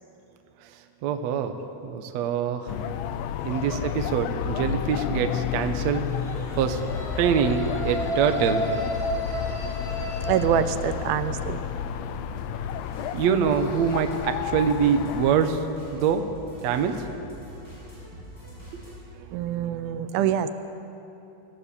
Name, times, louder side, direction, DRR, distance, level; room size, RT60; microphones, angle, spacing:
voice 1, 1.0-1.5 1.8-2.7 3.4-6.0 6.6-6.8 7.2-8.6 13.1-15.6 15.9-16.2 16.6-17.1, right 7 dB, 65° right, 7 dB, 1.9 m, -24 dB
sound 1, 2.7-15.5, left 9 dB, 80° left, 2.4 m, -31 dB
sound 2, 3.0-3.7 6.0-10.5, equal, ahead, 3.9 m, -32 dB
voice 2, 10.3-11.6 19.3-20.5, right 9 dB, 80° right, 11 dB, 2.6 m, -25 dB
sound 3, 12.4-19.0, equal, 25° left, 7.7 m, -44 dB
25.0 x 16.0 x 7.0 m, 3.0 s
omnidirectional pair, 4.3 m